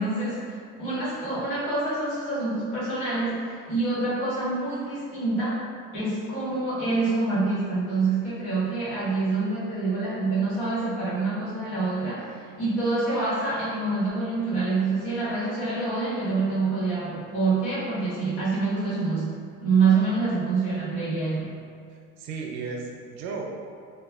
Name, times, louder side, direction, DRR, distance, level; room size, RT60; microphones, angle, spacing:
voice 1, 0.0-5.6 5.9-21.5, right 3 dB, 85° left, -11 dB, 1.4 m, -26 dB
voice 2, 21.9-23.5, right 4 dB, 85° right, 1 dB, 0.4 m, -35 dB
3.0 x 2.3 x 2.3 m, 2.2 s
cardioid pair, 130°, 30 cm